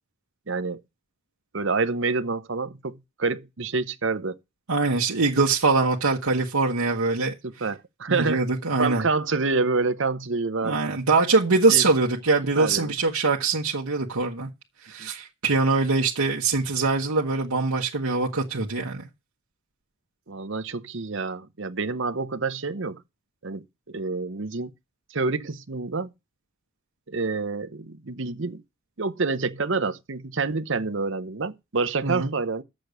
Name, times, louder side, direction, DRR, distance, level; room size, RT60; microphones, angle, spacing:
voice 1, 0.5-0.8 1.5-4.4 7.4-8.5 8.8-10.8 11.7-11.8 12.6-12.9 15.0-15.1 20.3-23.0 23.4-24.7 25.1-26.1 27.1-28.6 29.0-32.6, right 4 dB, 60° right, 0.8 m, -27 dB
voice 2, 4.7-7.3 8.1-9.0 10.6-14.5 14.8-19.1 32.0-32.3, right 3 dB, 90° right, 1.3 m, -23 dB
7.6 x 6.7 x 6.7 m
head